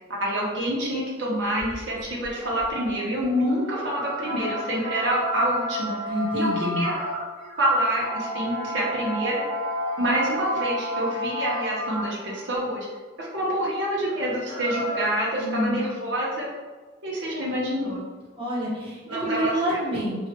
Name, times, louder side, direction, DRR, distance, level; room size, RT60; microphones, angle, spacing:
voice 1, 0.1-6.0 6.3-7.0 7.6-9.4 10.0-12.9 13.2-16.5 17.0-18.0 19.1-19.8, right 1 dB, 65° right, -5 dB, 0.9 m, -27 dB
sound 1, 1.6-12.5 14.0-15.3, equal, 25° left, 0.6 m, -31 dB
voice 2, 6.1-6.9 15.4-15.9 18.3-20.3, equal, 30° right, -8 dB, 1.1 m, -27 dB
3.1 x 2.4 x 2.8 m, 1.4 s
head